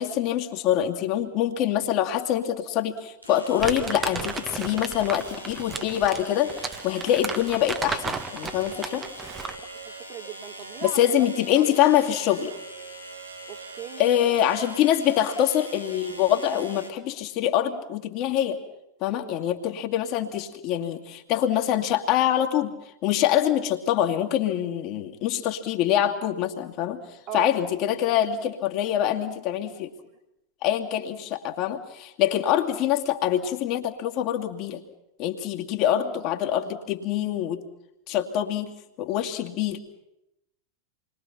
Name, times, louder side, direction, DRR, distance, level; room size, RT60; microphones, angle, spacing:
voice 1, 0.0-9.1 10.8-12.5 14.0-18.6 19.0-27.0 27.3-29.9 30.6-34.8 35.2-37.6 38.1-38.7 39.0-39.8, left 11 dB, 40° left, 3 dB, 2.4 m, -25 dB
sound 1, 1.2-1.3 3.2-16.9, right 1 dB, 90° right, 3.4 m, -42 dB
Crumpling crinkling, 3.6-9.7, right 4 dB, 20° right, 1.6 m, -34 dB
voice 2, 9.8-11.7 13.5-14.2 19.1-19.4 27.3-27.5 32.2-32.4, right 10 dB, 40° right, 3 dB, 3.4 m, -38 dB
28.0 x 22.5 x 5.9 m, 0.87 s
figure-of-eight pair, 90°, 0 cm